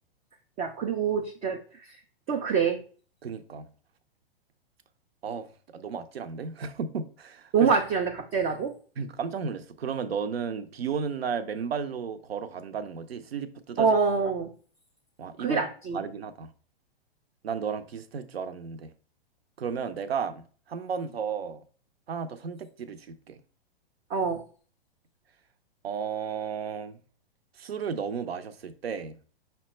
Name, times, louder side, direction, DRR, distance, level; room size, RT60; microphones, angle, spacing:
voice 1, 0.6-1.6 2.3-2.8 7.5-8.7 13.8-14.5 15.4-16.0 24.1-24.4, right 5 dB, 20° right, 0.3 m, -25 dB
voice 2, 3.2-3.7 5.2-7.7 9.0-14.0 15.2-15.6 15.9-16.5 17.4-18.9 19.6-21.6 22.1-23.4 25.8-27.0 27.6-29.2, right 6 dB, 80° right, 0.6 m, -34 dB
5.7 x 2.2 x 4.1 m
hypercardioid pair, 120°, 30 cm